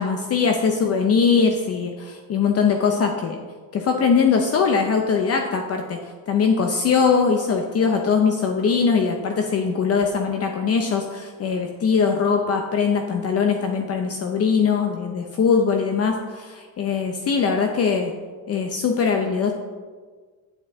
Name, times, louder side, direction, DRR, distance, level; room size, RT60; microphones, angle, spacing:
voice 1, 0.0-3.4 3.7-6.0 6.3-18.1 18.5-19.5, left 5 dB, 40° left, 3 dB, 0.7 m, -21 dB
8.9 x 7.6 x 3.5 m, 1.5 s
cardioid pair, 140°, 36 cm